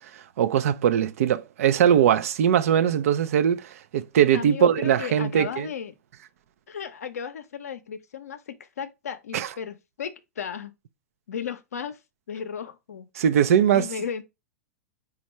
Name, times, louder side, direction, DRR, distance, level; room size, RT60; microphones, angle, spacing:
voice 1, 0.0-5.7 9.3-9.5 13.2-13.9, right 9 dB, 70° right, 0.4 m, -21 dB
voice 2, 4.3-5.9 6.7-10.8 11.3-12.0 12.3-13.1 13.7-14.2, left 7 dB, 85° left, 0.6 m, -35 dB
4.3 x 2.3 x 3.0 m
hypercardioid pair, 110°, 8 cm